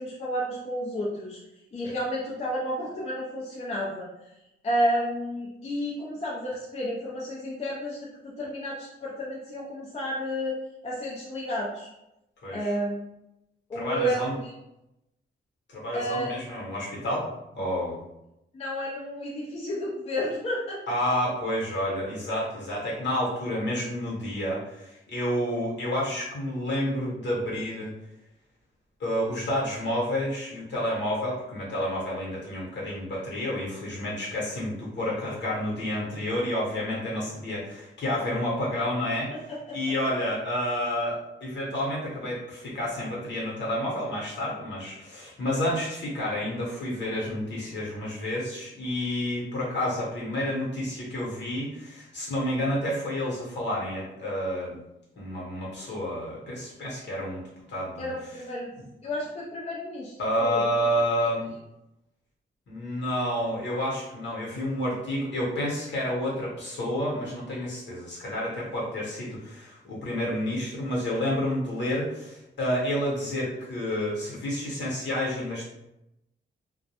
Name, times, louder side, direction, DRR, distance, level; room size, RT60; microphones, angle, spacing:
voice 1, 0.0-1.4 1.7-4.1 4.6-10.6 10.8-11.9 12.5-13.1 13.7-14.5 15.9-16.3 18.5-20.8 58.0-60.6, equal, 30° left, -5 dB, 0.4 m, -31 dB
voice 2, 12.4-12.8 13.7-14.4 15.7-17.3 17.5-18.0 20.9-27.9 29.0-39.3 39.7-54.8 55.2-57.4 57.7-58.4 58.8-58.9 60.2-61.5 62.7-75.7, left 1 dB, 60° left, -5 dB, 0.9 m, -30 dB
2.2 x 2.0 x 2.8 m, 0.89 s
wide cardioid pair, 165°, 20 cm